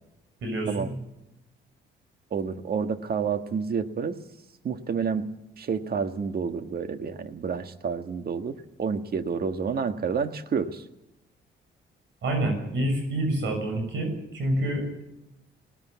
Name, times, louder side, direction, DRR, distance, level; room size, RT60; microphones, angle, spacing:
voice 1, 0.4-0.9 12.2-14.8, right 1 dB, 70° right, 4 dB, 6.6 m, -27 dB
voice 2, 2.3-4.2 4.6-5.3 5.6-10.8, right 6 dB, 50° right, 8 dB, 1.6 m, -29 dB
19.5 x 18.5 x 8.4 m, 0.88 s
cardioid pair, 90°, 20 cm